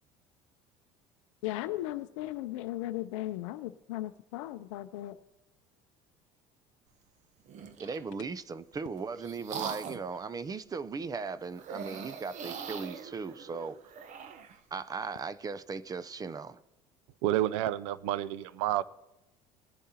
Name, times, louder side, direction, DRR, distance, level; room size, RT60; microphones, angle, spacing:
voice 1, 1.4-5.2, left 15 dB, 85° left, 0.5 m, -36 dB
sound 1, 7.5-8.1 8.7-10.2 11.5-14.6, right 6 dB, 50° right, 0.9 m, -42 dB
voice 2, 7.8-13.8 14.7-16.6, right 5 dB, 25° right, 0.5 m, -38 dB
voice 3, 17.2-18.8, right 13 dB, 85° right, 0.5 m, -29 dB
20.0 x 10.0 x 2.8 m
supercardioid pair, 90°, 15 cm